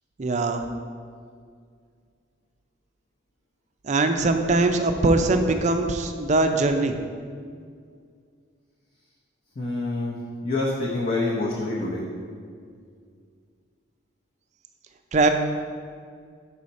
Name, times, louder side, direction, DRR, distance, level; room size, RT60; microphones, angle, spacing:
voice 1, 0.2-0.6 3.8-6.9 15.1-15.3, right 2 dB, 35° right, 6 dB, 0.4 m, -21 dB
voice 2, 9.6-10.2 10.4-12.1, left 2 dB, 45° left, -5 dB, 0.7 m, -26 dB
6.4 x 5.6 x 4.1 m, 2.2 s
head